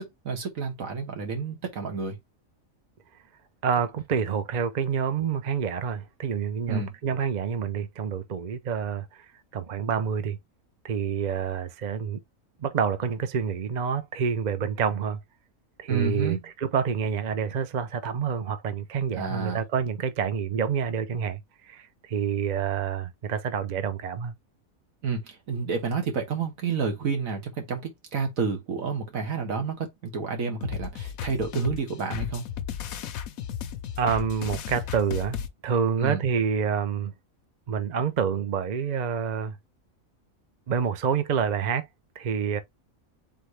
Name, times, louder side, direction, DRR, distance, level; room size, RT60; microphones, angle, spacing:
voice 1, 0.0-2.2 6.7-6.9 15.9-16.4 19.1-19.6 25.0-32.4 36.0-36.2, right 5 dB, 75° right, 1.7 m, -30 dB
voice 2, 3.6-9.3 9.5-10.4 10.8-12.2 12.6-15.2 15.8-24.3 34.0-37.1 37.7-39.6 40.7-41.9 42.2-42.6, right 7 dB, 45° right, 0.6 m, -28 dB
sound 1, 30.6-35.5, left 9 dB, 85° left, 1.1 m, -34 dB
4.1 x 3.6 x 3.1 m
omnidirectional pair, 1.4 m